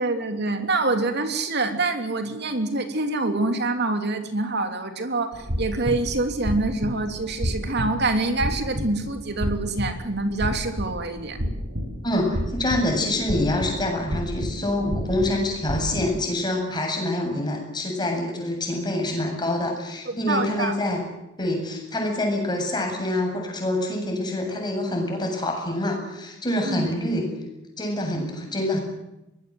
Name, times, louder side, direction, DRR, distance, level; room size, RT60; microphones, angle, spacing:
voice 1, 0.0-11.4 20.0-20.7 26.6-26.8, right 2 dB, 55° right, 6 dB, 3.2 m, -26 dB
sound 1, 5.3-16.2, equal, 90° right, 6.2 m, -31 dB
voice 2, 12.0-21.0 21.4-27.3 27.8-28.8, left 1 dB, 20° left, 2 dB, 8.0 m, -26 dB
24.0 x 20.0 x 7.9 m, 0.92 s
head